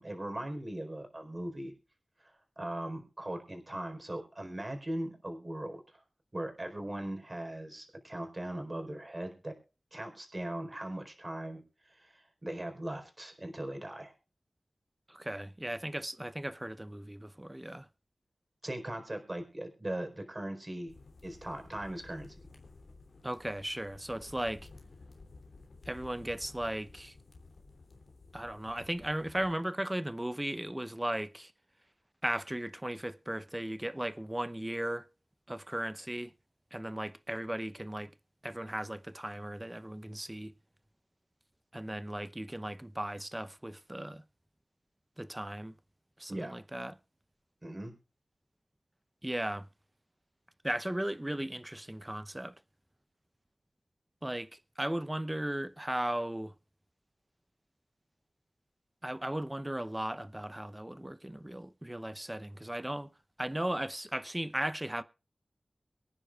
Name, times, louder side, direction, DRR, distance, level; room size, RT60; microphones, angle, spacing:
voice 1, 0.0-1.7 2.2-6.0 6.3-9.6 9.9-14.1 18.6-20.9 21.2-22.3 46.3-46.6 47.6-47.9, right 1 dB, 30° right, 4.3 m, -39 dB
voice 2, 15.1-17.9 23.2-24.7 25.9-27.2 28.3-31.5 32.2-35.1 35.5-36.3 36.7-38.1 38.4-40.5 41.7-44.2 45.2-45.8 46.2-46.9 49.2-49.7 50.6-52.5 54.2-56.5 59.0-63.1 63.4-65.0, right 1 dB, 15° right, 0.8 m, -36 dB
sound 1, 20.9-29.5, left 3 dB, 80° left, 3.1 m, -54 dB
24.0 x 9.9 x 2.4 m
wide cardioid pair, 60°, 0 cm